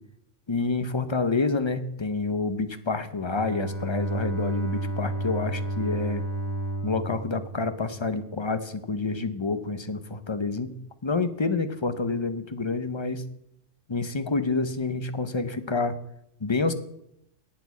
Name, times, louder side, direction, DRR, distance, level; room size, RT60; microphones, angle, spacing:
voice 1, 0.5-6.2 6.8-10.8 11.0-13.2 13.9-16.0 16.4-16.7, left 3 dB, 30° left, 11 dB, 0.6 m, -28 dB
Bowed string instrument, 3.2-8.5, right 2 dB, 30° right, 4.0 m, -32 dB
8.6 x 8.6 x 8.3 m, 0.78 s
omnidirectional pair, 1.3 m